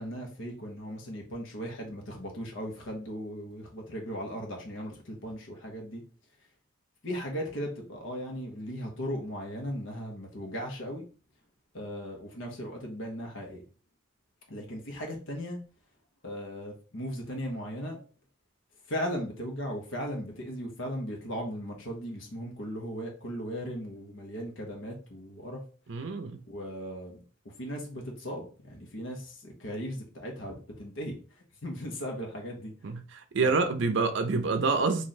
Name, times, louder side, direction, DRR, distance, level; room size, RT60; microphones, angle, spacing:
voice 1, 0.0-6.0 7.0-11.0 11.7-13.6 14.5-15.6 16.2-18.0 18.9-25.6 26.5-32.7 33.4-33.7, equal, 65° left, 1.1 m, -37 dB
voice 2, 25.9-26.4 32.8-33.0 33.3-35.1, right 4 dB, 60° right, 0.5 m, -27 dB
3.2 x 2.6 x 4.1 m
head